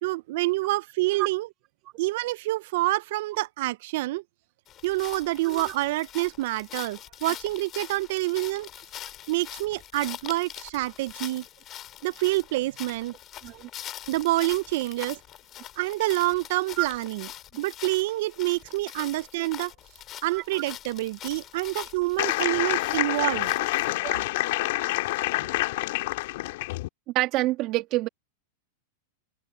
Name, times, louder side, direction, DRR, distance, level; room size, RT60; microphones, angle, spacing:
voice 1, 0.0-1.5 2.0-4.2 4.8-8.7 9.3-11.4 12.0-13.1 14.1-15.2 15.8-17.3 17.6-19.7 20.2-23.6, right 19 dB, 65° right, 0.7 m, -27 dB
sound 1, 4.7-23.9, left 12 dB, 35° left, 4.7 m, -43 dB
sound 2, 22.2-26.9, left 19 dB, 65° left, 2.4 m, -27 dB
voice 2, 27.1-28.1, right 18 dB, 45° right, 2.4 m, -27 dB
hypercardioid pair, 120°, 0 cm